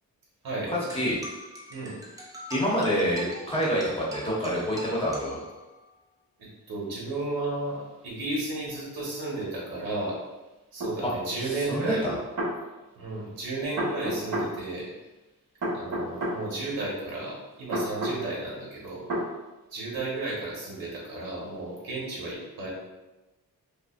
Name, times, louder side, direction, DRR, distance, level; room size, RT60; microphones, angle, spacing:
sound 1, 0.9-5.9, right 1 dB, 10° right, 0.5 m, -43 dB
voice 1, 2.5-5.4 11.0-11.1 11.5-12.1, equal, 15° left, -6 dB, 0.9 m, -27 dB
voice 2, 6.4-10.2 10.7-12.1 12.9-14.9 15.7-19.0 19.7-22.7, right 2 dB, 75° right, -5 dB, 1.4 m, -33 dB
sound 2, 10.8-10.9 12.1-12.6 13.8-14.5 15.6-16.4 17.7-18.2 19.1-19.3, right 1 dB, 60° right, 1.3 m, -29 dB
5.1 x 2.1 x 2.5 m, 1.1 s
wide cardioid pair, 165°, 36 cm